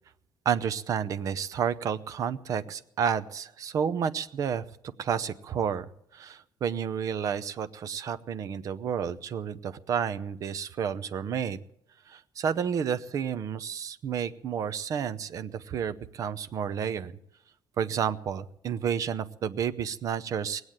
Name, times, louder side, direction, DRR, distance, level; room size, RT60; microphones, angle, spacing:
voice 1, 0.4-4.6 5.0-5.9 6.1-11.6 12.1-17.1 17.8-20.6, right 7 dB, 40° right, 11 dB, 0.6 m, -30 dB
19.5 x 8.0 x 8.8 m, 0.76 s
cardioid pair, 180°, 8 cm